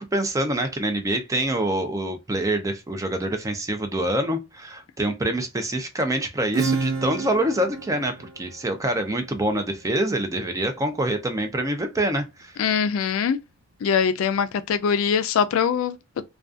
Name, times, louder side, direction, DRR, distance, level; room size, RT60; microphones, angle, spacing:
voice 1, 0.0-12.6, right 1 dB, 15° right, 0.4 m, -26 dB
Acoustic guitar / Strum, 6.5-11.9, right 4 dB, 85° right, 0.6 m, -32 dB
voice 2, 12.6-13.4 13.8-16.0, left 7 dB, 70° left, 0.3 m, -22 dB
2.4 x 2.2 x 2.4 m
head